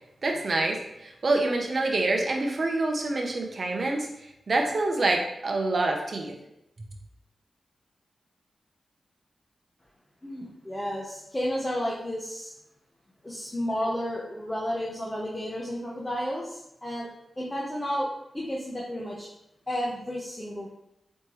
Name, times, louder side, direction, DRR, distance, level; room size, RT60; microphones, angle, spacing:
voice 1, 0.2-4.1 4.5-6.3, right 2 dB, 55° right, 2 dB, 0.8 m, -26 dB
voice 2, 10.2-12.5 13.2-17.1 17.4-18.1 18.3-19.3 19.7-20.7, equal, 20° left, -5 dB, 0.9 m, -32 dB
4.4 x 3.3 x 3.0 m, 0.82 s
wide cardioid pair, 80°, 0 cm